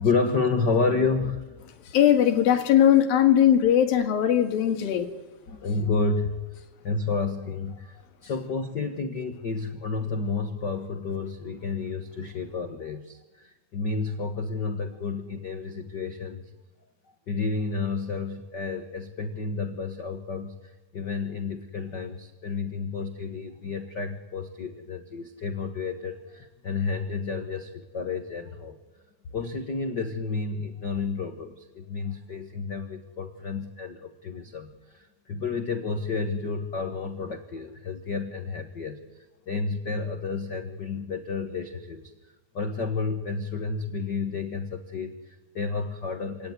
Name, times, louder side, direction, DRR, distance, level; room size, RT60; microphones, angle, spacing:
voice 1, 0.0-1.7 5.5-6.4 6.8-16.5 17.3-20.6 20.9-28.8 29.3-39.0 39.5-42.1 42.5-46.5, left 4 dB, 85° left, 6 dB, 0.9 m, -30 dB
voice 2, 1.9-5.1, left 10 dB, 70° left, 6 dB, 3.6 m, -19 dB
27.0 x 18.0 x 9.6 m, 1.1 s
omnidirectional pair, 4.3 m